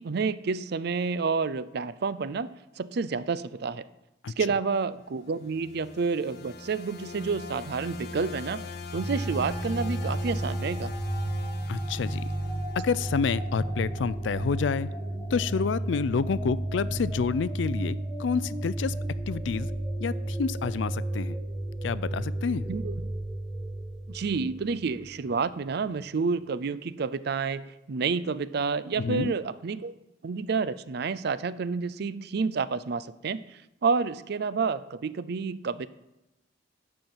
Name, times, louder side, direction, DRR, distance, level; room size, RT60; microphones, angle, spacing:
voice 1, 0.0-3.8 4.4-8.7 8.9-10.9 22.7-23.1 24.1-30.0 30.2-35.9, right 5 dB, 60° right, 16 dB, 0.5 m, -29 dB
sound 1, 5.2-13.4, left 3 dB, 60° left, 1.0 m, -41 dB
sound 2, 8.9-25.3, right 1 dB, ahead, 1.2 m, -33 dB
sound 3, 11.4-19.8, left 1 dB, 20° left, 2.1 m, -52 dB
voice 2, 11.7-12.3 12.8-14.9 15.3-19.0 19.3-19.7 20.0-21.4 21.8-22.7 29.0-29.3, left 5 dB, 75° left, 18 dB, 0.4 m, -28 dB
12.0 x 4.4 x 7.7 m, 0.96 s
head